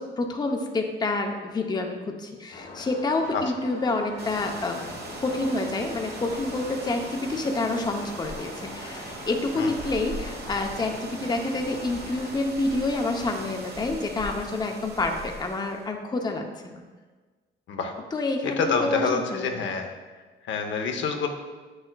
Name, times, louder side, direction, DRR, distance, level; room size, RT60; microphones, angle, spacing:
voice 1, 0.0-4.8 5.2-16.8 18.1-19.7, left 2 dB, 20° left, 3 dB, 0.6 m, -28 dB
sound 1, 2.5-12.3, left 3 dB, 85° left, 1.1 m, -43 dB
sound 2, 4.2-15.9, right 2 dB, 55° right, 1.1 m, -39 dB
voice 2, 18.4-19.9 20.4-21.3, left 5 dB, 70° left, 4 dB, 0.7 m, -27 dB
7.6 x 6.4 x 2.2 m, 1.4 s
cardioid pair, 90°, 20 cm